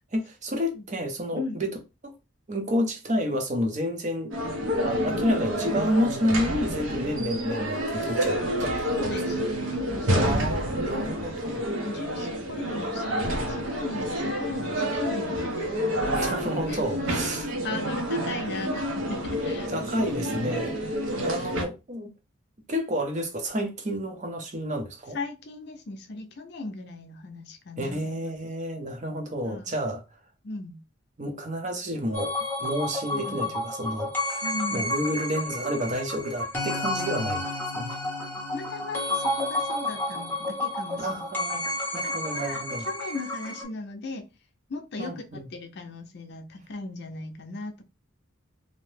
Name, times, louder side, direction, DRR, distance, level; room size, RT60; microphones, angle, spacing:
voice 1, 0.1-1.7 2.0-2.1 2.5-4.3 4.8-8.7 10.1-11.6 16.1-17.6 19.7-22.1 22.7-25.2 27.8-30.0 31.2-34.5 34.7-37.4 37.7-37.9 41.0-42.8 45.0-45.4, equal, 35° right, 0.6 m, -30 dB
sound 1, 4.3-21.6, equal, 80° right, 0.7 m, -29 dB
voice 2, 8.9-10.4 10.9-11.3 11.8-16.3 16.7-16.8 17.6-19.7 21.0-21.3 25.1-28.4 29.4-29.7 30.4-30.8 33.1-33.5 34.4-34.9 38.5-41.7 42.0-44.2 44.7-47.8, left 3 dB, 55° left, 0.5 m, -38 dB
sound 2, 32.1-43.6, left 1 dB, 10° left, 0.6 m, -31 dB
2.7 x 2.1 x 3.2 m
head